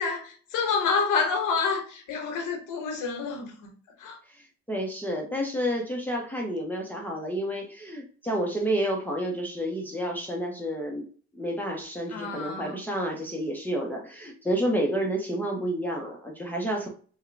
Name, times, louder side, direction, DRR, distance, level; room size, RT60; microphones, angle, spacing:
voice 1, 0.0-3.7 4.0-4.2 12.1-12.8, left 5 dB, 85° left, 1.1 m, -28 dB
voice 2, 4.3-11.1 11.3-16.9, equal, 5° left, 0.8 m, -30 dB
3.6 x 2.3 x 3.3 m
cardioid pair, 90°, 30 cm